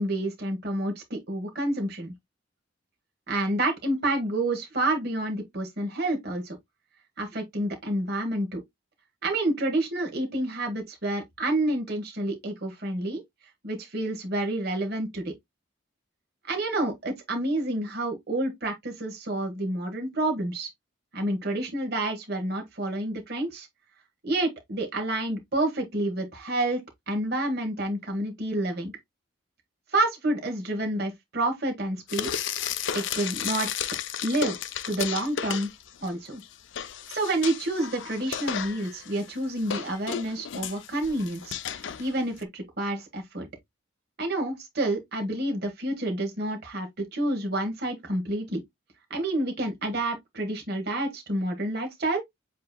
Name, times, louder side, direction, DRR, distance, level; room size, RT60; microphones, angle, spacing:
voice 1, 0.0-2.1 3.3-6.6 7.2-8.6 9.2-13.2 13.6-15.3 16.5-20.7 21.1-23.7 24.2-26.8 27.1-28.9 29.9-32.3 32.9-33.7 34.2-34.6 34.9-35.7 36.0-36.4 37.1-41.6 42.0-43.5 44.2-48.6 49.1-52.2, right 1 dB, 50° right, 1.4 m, -29 dB
Frying (food), 32.1-36.1 36.4-42.4, left 8 dB, 65° left, 0.5 m, -34 dB
7.5 x 2.9 x 2.2 m
head